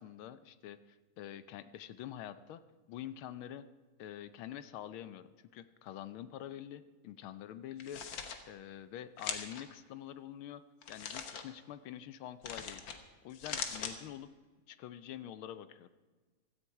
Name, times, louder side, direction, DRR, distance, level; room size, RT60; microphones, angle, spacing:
voice 1, 0.0-2.6 2.9-3.7 4.0-10.6 10.9-12.8 13.2-14.3 14.7-15.9, left 11 dB, 80° left, 13 dB, 1.5 m, -46 dB
sound 1, 7.7-8.4 9.2-9.6 10.8-11.4 12.4-13.0 13.3-13.9, left 6 dB, 65° left, 1.8 m, -40 dB
16.5 x 13.5 x 4.7 m, 1.3 s
omnidirectional pair, 2.3 m